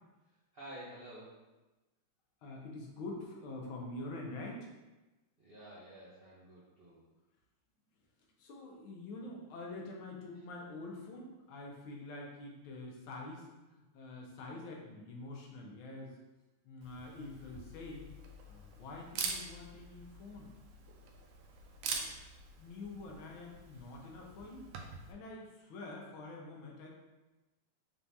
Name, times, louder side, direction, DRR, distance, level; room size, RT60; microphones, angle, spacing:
voice 1, 0.2-1.4 5.4-7.0, right 1 dB, 65° right, -8 dB, 0.5 m, -51 dB
voice 2, 2.4-4.7 8.4-16.2 16.6-18.1 18.5-20.5 22.1-22.2 22.6-24.6 25.1-26.9, left 2 dB, 75° left, -1 dB, 1.5 m, -46 dB
Camera, 16.8-25.1, right 4 dB, 85° right, 1.5 m, -45 dB
4.5 x 3.5 x 2.7 m, 1.1 s
omnidirectional pair, 2.4 m